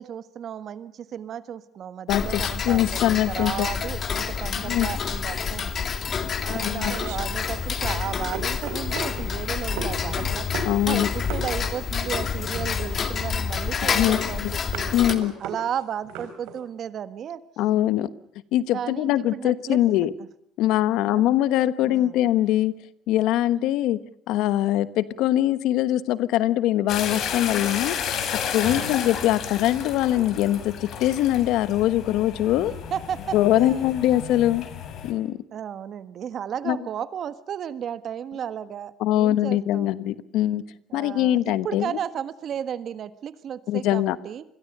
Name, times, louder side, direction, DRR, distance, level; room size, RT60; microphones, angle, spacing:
voice 1, 0.0-5.9 6.4-14.9 15.4-17.4 18.7-20.1 21.0-21.2 21.8-22.2 28.6-29.0 32.5-33.9 35.5-39.9 40.9-44.4, right 9 dB, 50° right, 13 dB, 1.5 m, -34 dB
voice 2, 2.1-3.7 4.6-4.9 6.5-7.0 10.6-11.1 13.9-14.5 14.9-15.3 17.6-18.1 18.5-20.1 20.6-22.7 23.1-24.0 24.3-28.0 28.5-32.7 33.3-34.6 35.0-35.4 36.7-36.8 39.0-40.6 40.9-41.9 43.7-44.2, left 13 dB, 75° left, 15 dB, 1.2 m, -22 dB
Tick-tock, 2.1-15.1, left 6 dB, 40° left, 2.5 m, -28 dB
sound 1, 6.2-16.6, right 5 dB, 85° right, 4.0 m, -38 dB
sound 2, 26.9-35.1, left 8 dB, 60° left, 5.1 m, -32 dB
27.0 x 22.0 x 6.7 m, 0.72 s
cardioid pair, 100°, 0 cm